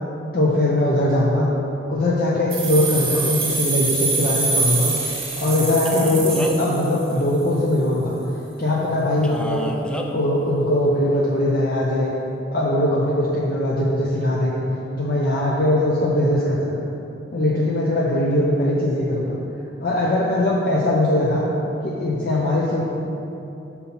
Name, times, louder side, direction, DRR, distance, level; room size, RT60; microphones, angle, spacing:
voice 1, 0.3-1.5 1.9-5.0 5.4-8.1 8.6-9.7 10.1-12.1 12.5-14.5 14.9-16.8 17.3-19.4 19.8-21.5 21.8-22.8, left 1 dB, 50° left, -5 dB, 0.7 m, -20 dB
sound 1, 2.5-7.3, right 4 dB, 30° right, 1.4 m, -25 dB
Male speech man speaking, 5.9-6.7 9.2-10.1, equal, 5° left, 0.3 m, -31 dB
5.5 x 4.2 x 5.9 m, 2.9 s
head